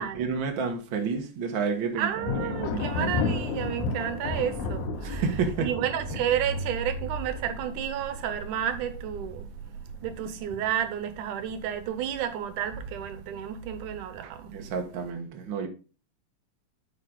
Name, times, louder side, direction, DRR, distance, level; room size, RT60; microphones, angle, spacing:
voice 1, 0.0-2.8 5.0-5.7 14.5-15.7, right 5 dB, 50° right, 1.7 m, -30 dB
voice 2, 2.0-5.3 5.6-9.5 10.0-14.5, right 9 dB, 90° right, 2.4 m, -31 dB
Thunder, 2.2-8.7 9.0-9.6 10.0-10.9, left 4 dB, 75° left, 2.4 m, -33 dB
8.3 x 5.8 x 3.8 m
omnidirectional pair, 3.5 m